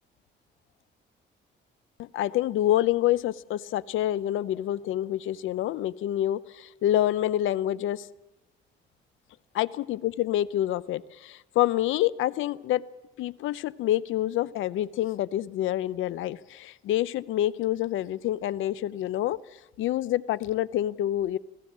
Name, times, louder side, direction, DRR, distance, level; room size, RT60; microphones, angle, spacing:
voice 1, 2.0-8.1 9.6-12.8 13.2-19.4 19.8-21.4, left 13 dB, 80° left, 19 dB, 0.7 m, -27 dB
27.0 x 15.5 x 7.4 m, 1.1 s
cardioid pair, 90°, 20 cm